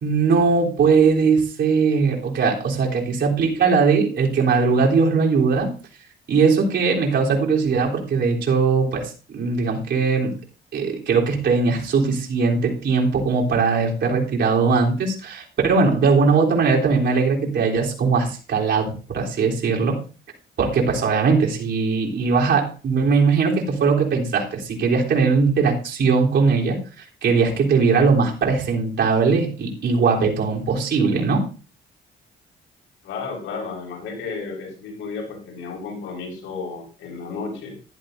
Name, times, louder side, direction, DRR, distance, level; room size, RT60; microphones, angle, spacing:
voice 1, 0.0-5.7 6.3-10.3 10.7-20.0 20.6-26.8 27.2-31.4, right 4 dB, 65° right, -1 dB, 3.6 m, -20 dB
voice 2, 33.0-37.8, left 4 dB, 90° left, 0 dB, 4.8 m, -33 dB
15.0 x 11.5 x 2.7 m, 0.35 s
cardioid pair, 90°, 20 cm